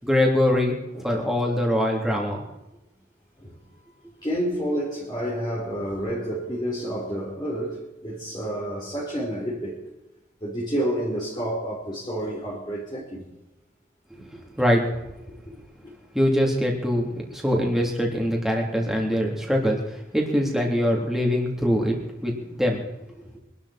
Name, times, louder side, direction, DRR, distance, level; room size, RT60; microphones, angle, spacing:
voice 1, 0.0-0.8 1.0-2.4 14.3-14.8 16.1-22.8, equal, ahead, -1 dB, 3.6 m, -23 dB
voice 2, 4.2-9.8 10.4-13.2 14.2-14.3, equal, 25° left, -6 dB, 4.0 m, -29 dB
25.0 x 12.5 x 4.5 m, 0.96 s
head